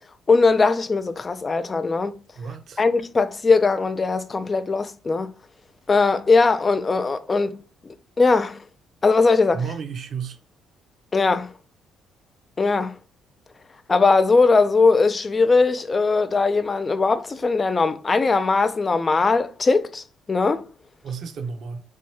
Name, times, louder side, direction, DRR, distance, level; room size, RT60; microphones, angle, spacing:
voice 1, 0.3-2.1 2.8-5.3 5.9-7.6 8.2-8.6 9.0-9.6 11.1-11.5 12.6-12.9 13.9-20.7, left 4 dB, 35° left, 0.4 m, -20 dB
voice 2, 2.4-2.8 9.5-10.4 21.0-21.8, right 6 dB, 60° right, 0.5 m, -32 dB
3.2 x 2.2 x 2.9 m
supercardioid pair, 60°, 0 cm